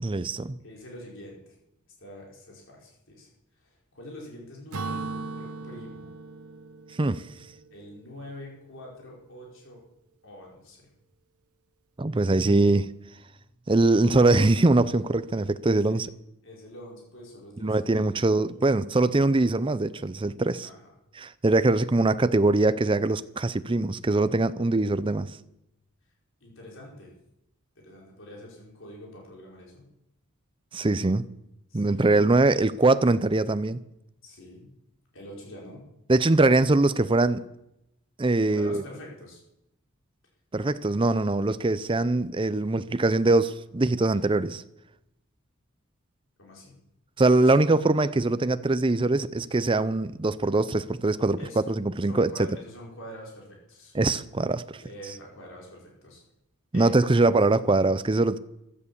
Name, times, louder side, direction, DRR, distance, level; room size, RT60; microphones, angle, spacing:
voice 1, 0.0-0.6 7.0-7.2 12.0-12.9 13.7-16.1 17.6-20.7 21.2-25.4 30.7-31.3 31.7-33.8 36.1-37.4 38.2-38.8 40.5-44.6 47.2-51.4 51.7-52.3 53.9-54.6 56.7-58.4, right 2 dB, 25° right, 0.5 m, -22 dB
voice 2, 0.6-1.5 2.0-3.3 3.6-6.1 7.7-9.8 10.2-10.9 15.9-16.1 16.4-18.5 20.6-20.9 26.4-27.1 27.7-29.9 31.7-32.7 34.2-34.7 35.1-35.9 38.5-39.4 46.4-46.8 47.3-47.8 51.4-51.7 52.1-54.0 54.8-56.2 56.7-57.1, left 1 dB, 60° left, 5.1 m, -45 dB
Acoustic guitar / Strum, 4.7-8.3, right 3 dB, 90° right, 1.0 m, -38 dB
15.5 x 12.5 x 7.0 m
head